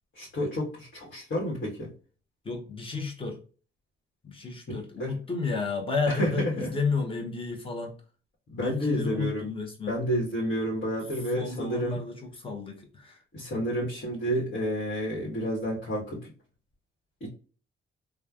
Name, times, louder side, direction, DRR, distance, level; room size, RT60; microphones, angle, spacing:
voice 1, 0.1-1.9 5.0-5.1 6.1-6.8 8.5-9.5 9.9-12.0 13.3-16.3 17.2-17.3, equal, 55° left, 1.5 m, -30 dB
voice 2, 2.4-3.4 4.2-7.9 8.6-9.9 11.4-13.2, left 4 dB, 25° left, 1.0 m, -32 dB
3.1 x 2.3 x 2.4 m
cardioid pair, 90°, 20 cm